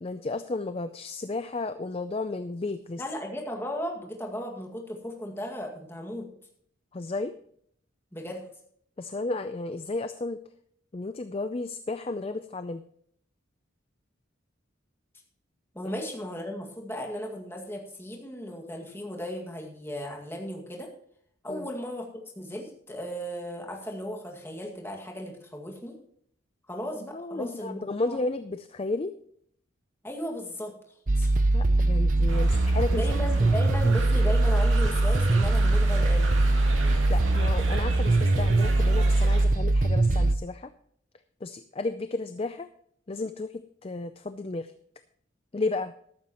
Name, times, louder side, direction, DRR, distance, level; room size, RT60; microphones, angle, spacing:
voice 1, 0.0-3.0 6.9-7.3 9.0-10.4 10.9-12.8 21.5-21.7 27.1-29.1 31.5-33.1 37.1-40.7 41.4-42.7 43.1-44.7 45.5-45.9, left 3 dB, 30° left, 10 dB, 0.4 m, -33 dB
voice 2, 3.0-6.3 8.1-8.4 15.7-20.9 21.4-26.0 26.7-28.2 30.0-30.7 31.1-31.3 32.9-36.4, equal, 10° left, 0 dB, 2.0 m, -36 dB
sound 1, 31.1-40.4, right 2 dB, 40° right, 0.7 m, -22 dB
sound 2, 32.3-39.4, right 3 dB, 80° right, 2.3 m, -38 dB
14.0 x 12.0 x 3.0 m, 0.66 s
head